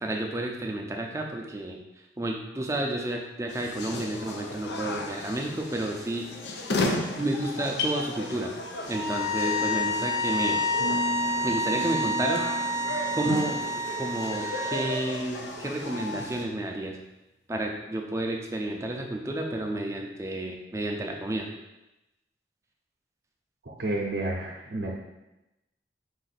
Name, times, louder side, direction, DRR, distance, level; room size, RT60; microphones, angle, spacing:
voice 1, 0.0-1.8 2.2-6.3 7.2-8.5 8.9-10.6 11.4-12.5 13.1-13.7 14.0-17.0 17.5-21.5, right 1 dB, 15° right, 1 dB, 0.5 m, -31 dB
sound 1, 3.5-16.4, left 2 dB, 75° left, 0.5 m, -35 dB
sound 2, 8.9-15.0, left 1 dB, 55° left, 1.4 m, -29 dB
sound 3, 10.8-13.9, left 1 dB, 35° left, 0.7 m, -37 dB
voice 2, 23.8-24.9, right 2 dB, 60° right, -3 dB, 0.6 m, -30 dB
4.9 x 2.6 x 4.1 m, 0.96 s
head